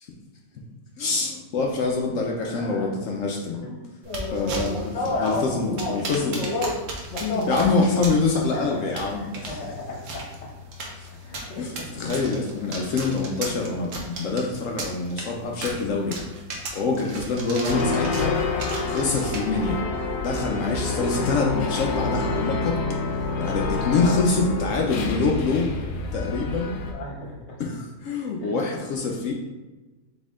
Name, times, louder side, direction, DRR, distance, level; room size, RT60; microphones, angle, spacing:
voice 1, 1.0-3.7 4.3-4.9 5.2-6.4 7.2-9.6 11.0-11.1 11.6-16.2 16.7-18.4 18.9-19.8 20.2-23.0 23.4-25.7 26.1-26.8 27.6-29.3, left 4 dB, 65° left, 0 dB, 0.8 m, -25 dB
voice 2, 2.4-2.9 3.6-6.0 6.3-6.8 7.1-7.6 8.5-10.5 11.2-11.9 17.1-17.2 23.7-23.8 26.9-27.6 28.4-28.8, left 2 dB, 50° left, -2 dB, 1.2 m, -32 dB
sound 1, 4.0-19.8, right 1 dB, 60° right, 1.1 m, -37 dB
sound 2, 17.5-22.5, right 1 dB, 10° left, 0.5 m, -35 dB
sound 3, 17.7-26.9, left 4 dB, 80° left, 1.2 m, -28 dB
4.2 x 3.6 x 3.6 m, 1.1 s
omnidirectional pair, 1.7 m